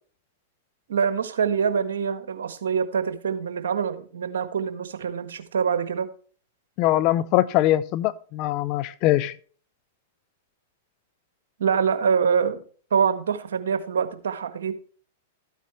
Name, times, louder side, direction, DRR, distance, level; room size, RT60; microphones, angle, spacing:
voice 1, 0.9-6.1 11.6-12.6 12.9-14.7, right 6 dB, 75° right, 1.4 m, -25 dB
voice 2, 6.8-9.3, left 15 dB, 45° left, 0.6 m, -22 dB
13.0 x 9.2 x 3.1 m
hypercardioid pair, 110°, 0 cm